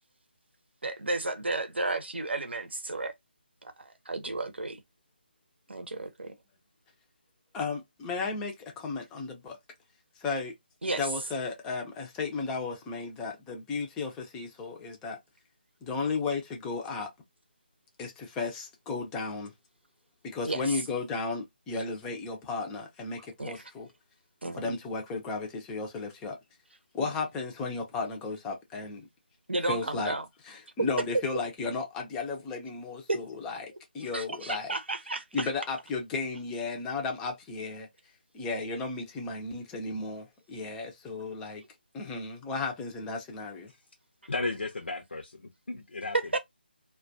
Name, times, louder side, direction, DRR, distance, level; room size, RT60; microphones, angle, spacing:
voice 1, 0.8-3.1 3.6-4.8 5.7-6.3 10.8-11.0 20.4-20.7 23.4-23.6 24.4-24.6 27.0-27.1 29.5-30.2 33.1-33.2 34.1-35.5 46.3-46.4, right 2 dB, 80° right, 0.7 m, -33 dB
voice 2, 7.5-9.6 10.2-10.5 11.0-15.2 15.8-17.1 18.0-19.5 20.2-23.9 24.5-26.4 26.9-29.1 29.7-30.1 30.5-34.7 35.3-37.9 38.3-41.6 41.9-43.7, left 4 dB, 10° left, 0.4 m, -34 dB
voice 3, 44.3-46.2, left 3 dB, 80° left, 0.6 m, -34 dB
2.2 x 2.1 x 2.6 m
figure-of-eight pair, 160°, 6 cm